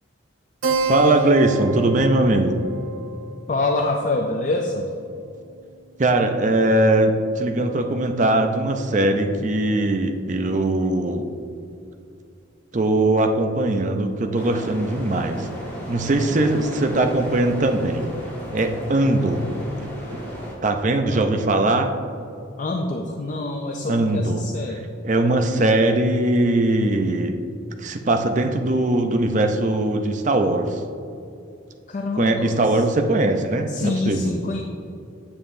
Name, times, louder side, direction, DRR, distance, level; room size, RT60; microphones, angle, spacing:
Keyboard (musical), 0.6-5.6, right 4 dB, 90° right, 0.8 m, -30 dB
voice 1, 0.9-2.6 6.0-11.3 12.7-15.5 15.9-18.1 18.5-19.4 19.8-20.2 20.6-21.9 23.9-24.5 25.0-27.4 27.8-30.8 32.2-34.3, right 2 dB, 40° right, 5 dB, 0.5 m, -20 dB
voice 2, 3.5-4.9 21.1-21.2 22.6-24.9 31.9-32.8 33.7-34.6, left 2 dB, 40° left, 2 dB, 0.4 m, -26 dB
sound 1, 14.3-20.5, equal, 10° left, 1.6 m, -35 dB
8.6 x 7.2 x 2.6 m, 2.6 s
head